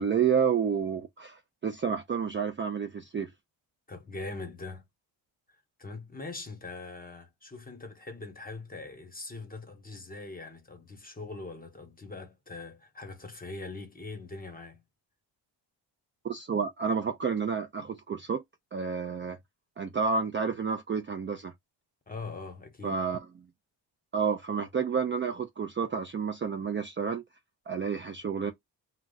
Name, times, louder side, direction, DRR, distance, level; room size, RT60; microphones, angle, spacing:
voice 1, 0.0-3.3 16.2-18.4 18.7-19.4 19.8-21.5 22.8-23.3 24.1-27.2 27.7-28.5, right 6 dB, 25° right, 0.4 m, -30 dB
voice 2, 3.9-4.8 5.8-14.8 22.1-23.0, left 3 dB, 20° left, 1.1 m, -42 dB
2.3 x 2.2 x 3.8 m
cardioid pair, 85°, 45 cm